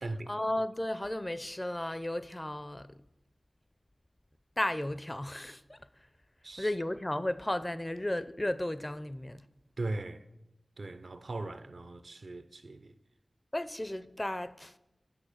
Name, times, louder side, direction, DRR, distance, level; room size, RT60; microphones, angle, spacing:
voice 1, 0.3-3.0 4.6-5.8 6.6-9.4 13.5-14.7, left 1 dB, 20° left, 0.4 m, -34 dB
voice 2, 9.8-10.2 10.8-12.9, right 2 dB, 65° right, 0.5 m, -39 dB
8.6 x 6.3 x 5.0 m
cardioid pair, 50°, 0 cm